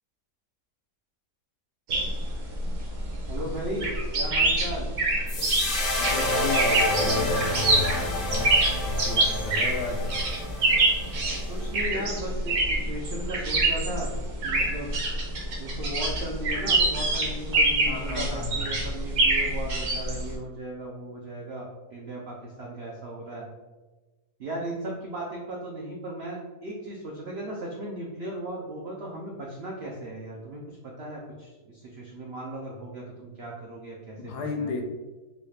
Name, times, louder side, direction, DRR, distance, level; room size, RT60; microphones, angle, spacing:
sound 1, 1.9-20.3, right 2 dB, 55° right, 1.0 m, -26 dB
voice 1, 3.3-4.9 11.5-14.1 14.4-14.9 15.5-23.5 24.4-34.7, right 1 dB, 75° right, -2 dB, 0.5 m, -36 dB
sound 2, 5.3-11.7, left 1 dB, 55° left, 0.6 m, -29 dB
voice 2, 6.0-8.0 8.3-8.5 8.8-10.1 17.9-18.7 34.2-34.8, left 3 dB, 75° left, 3 dB, 1.1 m, -33 dB
4.0 x 2.3 x 3.2 m, 1.2 s
omnidirectional pair, 1.8 m